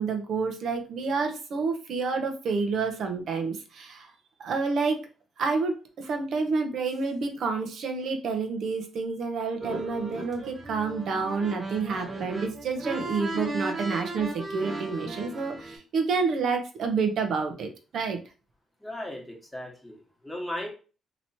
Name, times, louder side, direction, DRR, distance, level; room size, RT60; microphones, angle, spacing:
voice 1, 0.0-4.1 4.4-5.0 5.4-17.7 17.9-18.2, right 4 dB, 65° right, 4 dB, 0.8 m, -29 dB
sound 1, 9.6-15.8, right 2 dB, 30° right, 1.3 m, -36 dB
voice 2, 18.8-19.9 20.2-20.7, left 1 dB, 5° left, -1 dB, 1.2 m, -36 dB
3.0 x 2.9 x 2.7 m, 0.35 s
cardioid pair, 90°, 0 cm